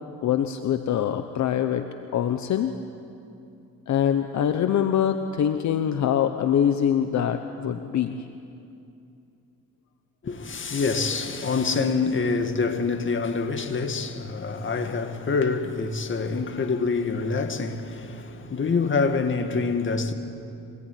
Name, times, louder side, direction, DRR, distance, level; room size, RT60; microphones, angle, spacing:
voice 1, 0.2-1.9 2.1-2.7 3.9-8.2, left 9 dB, 70° left, 1.1 m, -24 dB
voice 2, 10.2-20.1, left 4 dB, 40° left, 2.2 m, -26 dB
25.0 x 19.5 x 9.5 m
cardioid pair, 90°, 30 cm